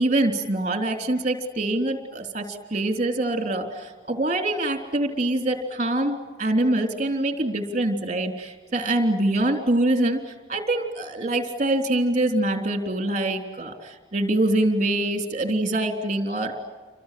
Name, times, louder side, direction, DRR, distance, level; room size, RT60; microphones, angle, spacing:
voice 1, 0.0-16.5, right 1 dB, 40° right, 5 dB, 3.4 m, -24 dB
29.5 x 25.0 x 7.7 m, 1.4 s
head